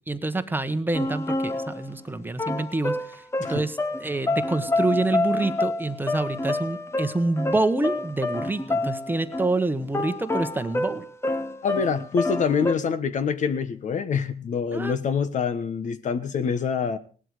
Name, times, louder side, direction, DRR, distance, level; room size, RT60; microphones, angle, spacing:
voice 1, 0.1-3.2 3.5-11.0 14.7-15.0, right 2 dB, 10° right, 9 dB, 1.3 m, -27 dB
sound 1, 0.9-2.0 2.4-9.5 9.8-12.8, left 2 dB, 15° left, 1.0 m, -28 dB
voice 2, 11.6-17.0, left 6 dB, 45° left, 13 dB, 1.3 m, -26 dB
18.5 x 12.0 x 4.9 m, 0.39 s
cardioid pair, 110°, 17 cm